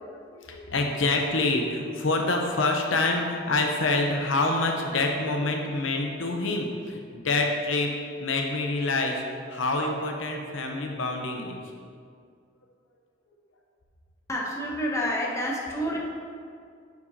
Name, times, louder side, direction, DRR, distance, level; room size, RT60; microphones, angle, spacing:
voice 1, 0.0-11.6, left 2 dB, 90° left, 2 dB, 0.8 m, -27 dB
voice 2, 14.3-16.0, equal, 15° left, -2 dB, 0.8 m, -28 dB
9.4 x 5.0 x 2.8 m, 2.2 s
head